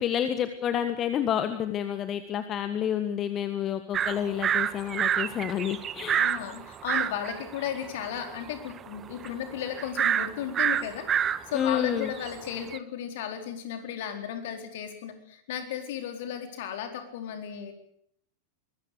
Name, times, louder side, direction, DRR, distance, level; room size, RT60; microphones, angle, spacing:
voice 1, 0.0-6.2 11.5-12.1, left 9 dB, 30° left, 10 dB, 1.6 m, -29 dB
sound 1, 3.9-12.8, right 8 dB, 25° right, 1.3 m, -29 dB
voice 2, 6.2-11.1 11.5-17.7, left 9 dB, 55° left, 5 dB, 4.3 m, -35 dB
24.0 x 21.0 x 6.8 m, 0.69 s
figure-of-eight pair, 90°, 0 cm